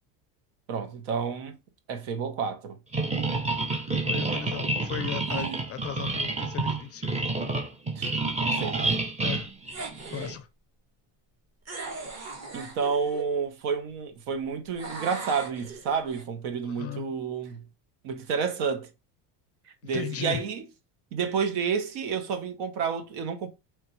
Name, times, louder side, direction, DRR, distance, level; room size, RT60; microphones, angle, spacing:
voice 1, 0.7-1.6 1.9-2.8 5.3-5.6 7.9-8.1 8.4-9.0 12.5-17.6 18.0-18.9 19.8-20.6 21.1-23.5, right 6 dB, 75° right, 1.2 m, -30 dB
sound 1, 2.9-10.4, right 3 dB, 15° right, 0.7 m, -29 dB
voice 2, 4.0-7.2 9.2-9.5 10.1-10.5 16.6-17.1 19.9-20.4, left 11 dB, 35° left, 0.4 m, -36 dB
sound 2, 9.7-10.4 11.7-13.3 14.8-16.2, right 4 dB, 35° right, 1.5 m, -39 dB
4.5 x 3.3 x 3.1 m
cardioid pair, 120°, 47 cm